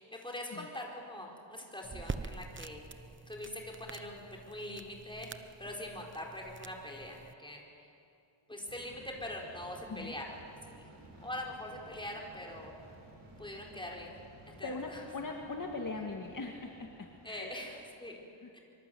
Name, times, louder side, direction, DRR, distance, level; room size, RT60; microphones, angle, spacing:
voice 1, 0.0-2.8 3.3-5.3 5.6-7.9 8.5-10.4 10.6-10.9 11.2-12.7 13.4-14.1 14.5-15.0 17.2-18.2 18.5-18.6, left 1 dB, 10° left, -1 dB, 4.6 m, -43 dB
sound 1, 1.8-7.3, right 4 dB, 25° right, 0.9 m, -46 dB
sound 2, 8.7-17.9, right 2 dB, 90° right, 6.7 m, -55 dB
voice 2, 14.6-17.6 18.4-18.5, left 3 dB, 40° left, 1 dB, 2.1 m, -40 dB
25.0 x 25.0 x 7.9 m, 2.6 s
wide cardioid pair, 115°, 49 cm